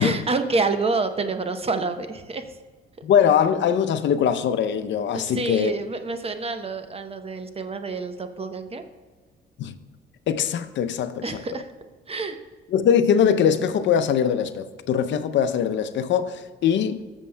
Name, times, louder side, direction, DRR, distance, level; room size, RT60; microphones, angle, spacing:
voice 1, 0.0-2.5 5.1-8.8 11.2-11.7 12.1-12.4, right 3 dB, 30° right, 0.8 m, -28 dB
voice 2, 3.0-5.7 9.6-9.8 10.3-11.2 12.7-17.0, left 8 dB, 70° left, 0.6 m, -21 dB
14.0 x 7.2 x 2.2 m
cardioid pair, 90°, 20 cm